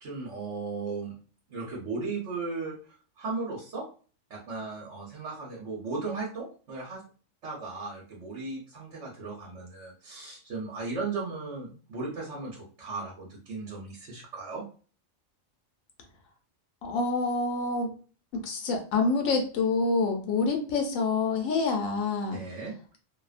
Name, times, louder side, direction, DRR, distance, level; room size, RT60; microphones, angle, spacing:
voice 1, 0.0-1.1 1.5-2.7 3.2-3.8 4.3-7.0 7.4-14.6 22.3-22.7, right 3 dB, 65° right, -4 dB, 1.1 m, -36 dB
voice 2, 16.8-17.9 18.3-22.4, left 3 dB, 85° left, 3 dB, 1.1 m, -27 dB
2.7 x 2.0 x 2.4 m, 0.39 s
omnidirectional pair, 1.3 m